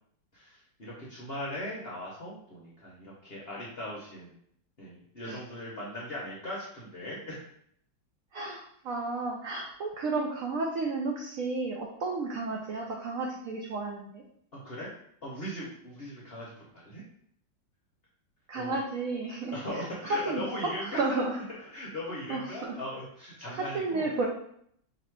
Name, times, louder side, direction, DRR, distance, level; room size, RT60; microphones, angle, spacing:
voice 1, 0.3-4.3 4.8-7.4 14.5-14.9 15.2-17.0 18.6-18.7 19.5-21.2 21.6-24.3, left 1 dB, 55° left, -5 dB, 0.6 m, -39 dB
voice 2, 8.3-14.2 18.5-20.7 21.0-21.4 22.3-22.8 23.5-24.3, right 3 dB, 85° right, 0 dB, 0.7 m, -32 dB
3.0 x 2.9 x 4.5 m, 0.68 s
omnidirectional pair, 2.0 m